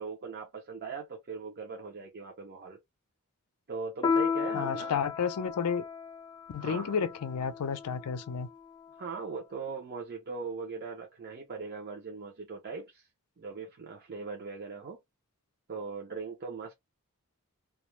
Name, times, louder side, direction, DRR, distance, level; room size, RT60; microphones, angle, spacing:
voice 1, 0.0-2.8 3.7-5.0 6.6-7.0 9.0-13.1 13.4-15.0 15.7-16.7, right 4 dB, 45° right, 0.5 m, -40 dB
Piano, 4.0-9.0, left 5 dB, 20° left, 0.4 m, -34 dB
voice 2, 4.5-5.8 6.5-8.5, left 6 dB, 85° left, 0.4 m, -31 dB
2.3 x 2.0 x 3.0 m
head